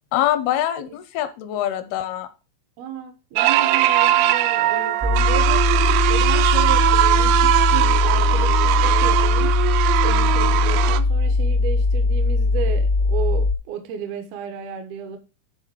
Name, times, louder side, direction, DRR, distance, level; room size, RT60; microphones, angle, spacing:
voice 1, 0.1-2.3, left 12 dB, 80° left, 2.5 m, -24 dB
voice 2, 2.8-5.6 6.1-9.6 10.0-15.2, right 7 dB, 75° right, 2.9 m, -33 dB
sound 1, 3.4-11.0, right 14 dB, 90° right, 2.0 m, -20 dB
sound 2, 5.0-13.5, left 3 dB, 55° right, 0.5 m, -20 dB
10.5 x 3.9 x 6.2 m
omnidirectional pair, 4.8 m